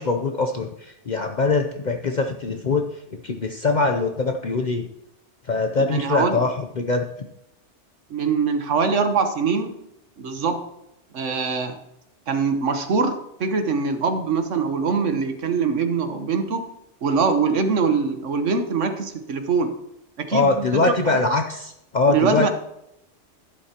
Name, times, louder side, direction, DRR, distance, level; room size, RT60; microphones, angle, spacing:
voice 1, 0.0-4.9 5.4-7.3 20.3-22.5, left 3 dB, 45° left, 4 dB, 0.7 m, -23 dB
voice 2, 5.8-6.4 8.1-9.8 10.2-10.6 11.1-11.8 12.3-16.6 17.0-19.7 20.2-20.8 21.1-21.3 22.1-22.5, right 5 dB, 85° right, 7 dB, 1.4 m, -23 dB
11.5 x 11.5 x 2.9 m, 0.83 s
omnidirectional pair, 1.2 m